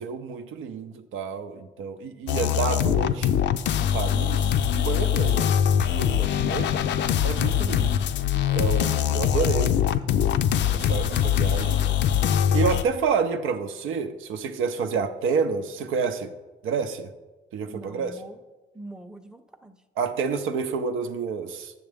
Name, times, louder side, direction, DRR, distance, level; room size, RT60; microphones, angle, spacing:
voice 1, 0.0-3.4 3.8-6.7 7.2-8.0 8.3-9.8 10.7-11.8 12.5-16.3 16.6-17.1 17.5-18.2 20.0-21.7, right 5 dB, 85° right, 7 dB, 0.6 m, -29 dB
sound 1, 2.3-12.8, left 9 dB, 65° left, 0.4 m, -23 dB
voice 2, 17.6-18.4 18.7-19.8, right 1 dB, 5° right, 7 dB, 0.6 m, -43 dB
8.7 x 6.6 x 3.5 m, 1.2 s
cardioid pair, 90°, 20 cm